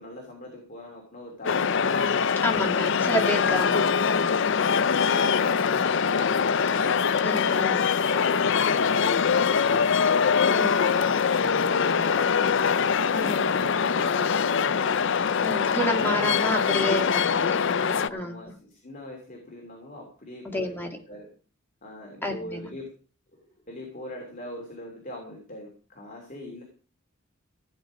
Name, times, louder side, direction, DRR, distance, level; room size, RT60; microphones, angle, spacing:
voice 1, 0.0-2.1 8.0-10.4 11.4-14.9 17.8-21.3 21.8-22.9 23.7-26.6, left 1 dB, 40° left, 0 dB, 3.0 m, -41 dB
sound 1, 1.5-18.1, left 6 dB, 60° left, 0.5 m, -23 dB
voice 2, 2.4-4.3 7.2-7.8 10.5-10.8 13.1-13.4 15.4-17.8 18.1-18.4 20.4-20.9 22.2-22.7, equal, 10° left, 1 dB, 2.4 m, -29 dB
15.5 x 9.1 x 5.1 m, 0.41 s
head